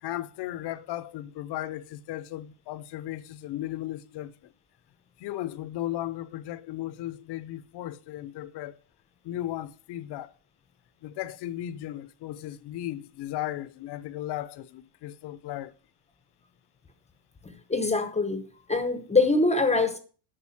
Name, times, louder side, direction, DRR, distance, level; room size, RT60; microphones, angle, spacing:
voice 1, 0.0-4.5 5.2-8.8 9.2-10.3 11.0-15.7, left 13 dB, 55° left, 0.8 m, -36 dB
voice 2, 17.4-20.0, left 3 dB, 15° left, 0.9 m, -24 dB
8.7 x 5.5 x 7.1 m
cardioid pair, 135°, 47 cm